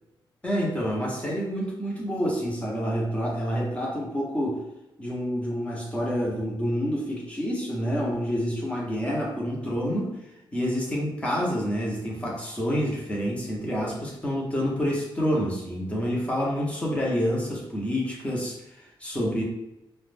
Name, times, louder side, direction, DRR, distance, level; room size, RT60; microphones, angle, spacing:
voice 1, 0.4-4.6 5.0-10.2 10.5-19.4, equal, 15° left, -3 dB, 0.6 m, -28 dB
2.3 x 2.0 x 3.2 m, 0.90 s
wide cardioid pair, 165°, 9 cm